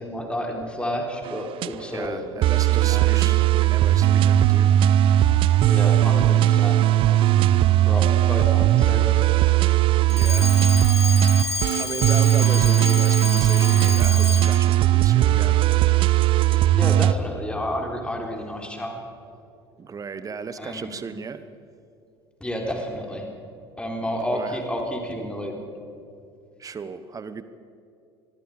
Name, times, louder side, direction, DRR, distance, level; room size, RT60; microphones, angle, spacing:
voice 1, 0.0-2.2 2.7-3.4 5.7-6.8 7.9-9.1 16.5-19.0 20.6-20.9 22.4-23.3 23.8-25.6, equal, 5° left, 2 dB, 3.9 m, -30 dB
sound 1, 1.2-1.7 2.4-17.1, right 12 dB, 40° right, 0.6 m, -18 dB
voice 2, 1.9-4.8 10.1-11.0 11.8-15.6 19.8-21.5 24.3-24.6 26.6-27.4, right 5 dB, 25° right, 13 dB, 1.1 m, -35 dB
Alarm, 10.1-14.7, left 4 dB, 85° left, 0.8 m, -30 dB
26.0 x 21.5 x 5.1 m, 2.6 s
figure-of-eight pair, 65°, 14 cm